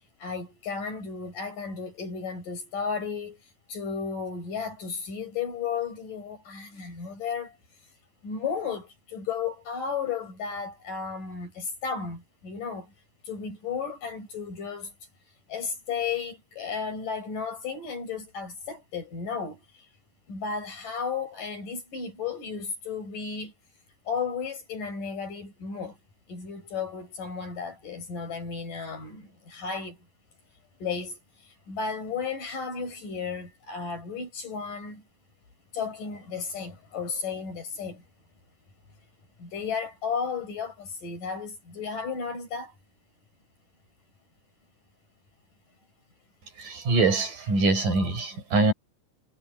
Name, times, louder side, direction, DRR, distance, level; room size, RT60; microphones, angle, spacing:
voice 1, 0.2-3.4 3.7-7.5 8.2-12.9 13.3-14.9 15.5-19.6 20.3-23.5 24.1-26.0 26.3-30.0 30.8-31.2 31.7-35.0 35.7-38.0 39.4-42.7, left 5 dB, 85° left, 8.7 m, -34 dB
voice 2, 46.5-48.7, right 3 dB, 85° right, 7.3 m, -24 dB
omnidirectional pair, 3.7 m